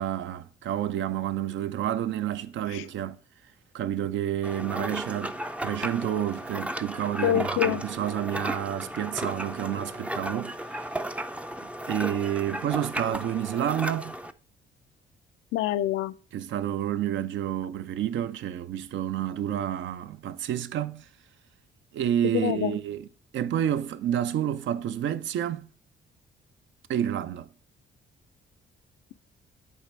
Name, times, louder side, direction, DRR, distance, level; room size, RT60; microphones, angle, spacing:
voice 1, 0.0-3.2 3.7-10.6 11.9-14.1 16.3-21.1 21.9-23.1 23.3-25.7 26.9-27.5, right 10 dB, 70° right, 0.5 m, -29 dB
sound 1, 4.4-14.3, right 1 dB, 5° right, 0.4 m, -34 dB
voice 2, 7.2-7.8 15.5-16.1 22.3-22.8, left 13 dB, 85° left, 0.5 m, -26 dB
8.6 x 3.3 x 4.5 m
cardioid pair, 90°, 20 cm